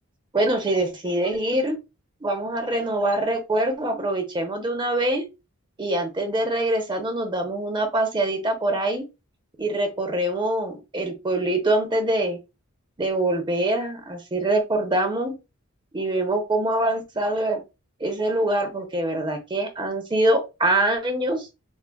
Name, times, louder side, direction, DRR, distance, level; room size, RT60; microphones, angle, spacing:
voice 1, 0.3-1.8 2.2-5.2 5.8-9.0 9.6-12.4 13.0-15.3 15.9-17.6 18.0-21.5, right 1 dB, 20° right, 0.7 m, -24 dB
3.5 x 2.3 x 2.2 m
head